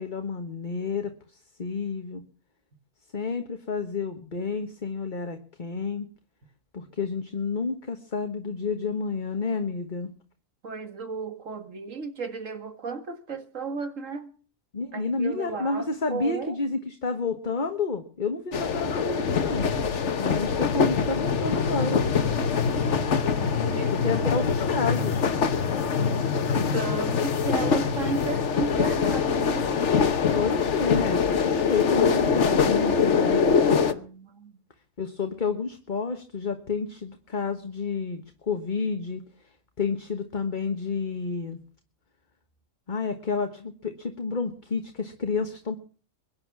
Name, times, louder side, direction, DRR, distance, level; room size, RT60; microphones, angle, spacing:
voice 1, 0.0-2.2 3.1-6.1 6.7-10.1 14.7-19.6 20.2-22.0 23.8-25.3 30.3-33.7 35.0-39.2 39.8-41.6 42.9-45.8, left 4 dB, 35° left, 1.4 m, -30 dB
voice 2, 10.6-14.3 14.9-16.6 23.3-24.6 26.7-29.7 33.7-34.6, right 4 dB, 55° right, 2.2 m, -35 dB
sound 1, 18.5-33.9, left 6 dB, 50° left, 1.4 m, -24 dB
22.5 x 10.0 x 6.0 m
omnidirectional pair, 1.6 m